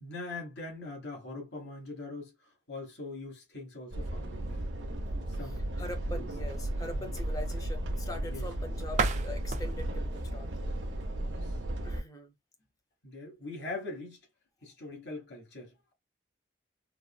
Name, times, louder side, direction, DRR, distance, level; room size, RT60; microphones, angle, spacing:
voice 1, 0.0-4.7 5.3-5.7 6.1-6.3 6.9-7.2 8.2-8.4 11.2-11.6 13.0-14.2 14.6-15.7, left 2 dB, 65° left, 1.4 m, -42 dB
sound 1, 3.9-12.0, right 1 dB, 85° right, 0.8 m, -35 dB
voice 2, 5.8-10.5 11.8-12.3, left 1 dB, 20° left, 0.7 m, -42 dB
sound 2, 8.9-11.7, right 4 dB, 40° right, 0.4 m, -35 dB
3.7 x 2.1 x 2.3 m
head